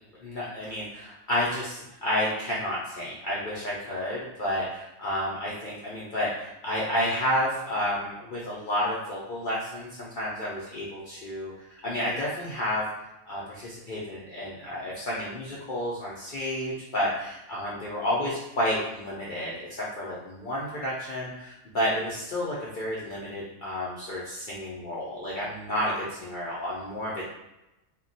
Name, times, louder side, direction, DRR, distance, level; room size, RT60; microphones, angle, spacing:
voice 1, 0.2-12.8 13.3-27.2, left 1 dB, 70° left, -6 dB, 0.5 m, -31 dB
2.2 x 2.1 x 3.8 m, 0.96 s
omnidirectional pair, 1.4 m